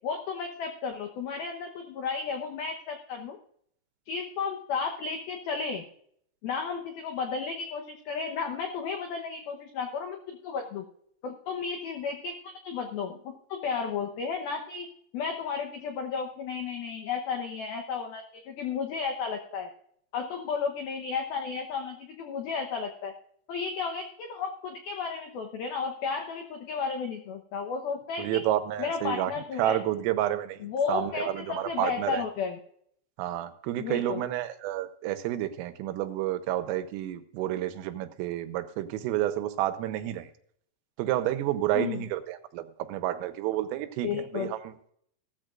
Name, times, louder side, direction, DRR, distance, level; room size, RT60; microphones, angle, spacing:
voice 1, 0.0-3.4 4.1-5.9 6.4-10.9 11.2-12.3 12.6-14.9 15.1-19.7 20.1-23.1 23.5-28.4 28.8-29.8 30.6-32.6 33.8-34.3 41.7-42.1 44.0-44.5, left 5 dB, 85° left, 4 dB, 2.1 m, -33 dB
voice 2, 28.2-29.3 29.6-32.2 33.2-40.3 41.0-44.9, right 13 dB, 85° right, 11 dB, 3.5 m, -30 dB
17.0 x 13.5 x 2.5 m, 0.66 s
omnidirectional pair, 5.9 m